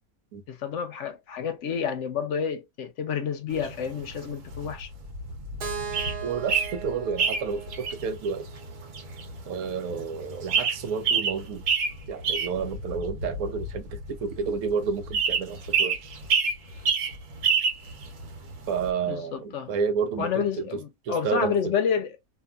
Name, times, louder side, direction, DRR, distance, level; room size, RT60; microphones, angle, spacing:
voice 1, 0.5-4.9 19.1-19.7 20.2-22.2, left 7 dB, 65° left, 0.8 m, -29 dB
sound 1, 3.5-18.9, right 5 dB, 65° right, 1.2 m, -28 dB
Keyboard (musical), 5.6-9.5, right 6 dB, 50° right, 0.7 m, -39 dB
voice 2, 6.0-8.5 9.5-11.6 12.1-13.8 14.1-16.1 18.7-20.5 21.1-21.7, right 5 dB, 90° right, 1.1 m, -30 dB
2.8 x 2.4 x 2.3 m
omnidirectional pair, 1.5 m